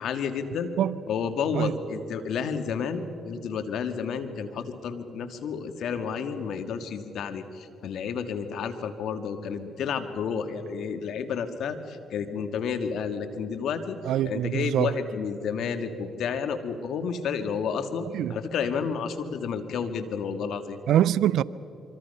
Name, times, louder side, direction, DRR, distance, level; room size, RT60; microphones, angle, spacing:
voice 1, 0.0-0.7 1.1-14.0 14.2-20.8, left 6 dB, 70° left, 1.9 m, -31 dB
voice 2, 14.0-14.9 18.1-18.4 20.9-21.4, right 11 dB, 75° right, 0.5 m, -24 dB
25.5 x 24.5 x 5.6 m
supercardioid pair, 60°, 0 cm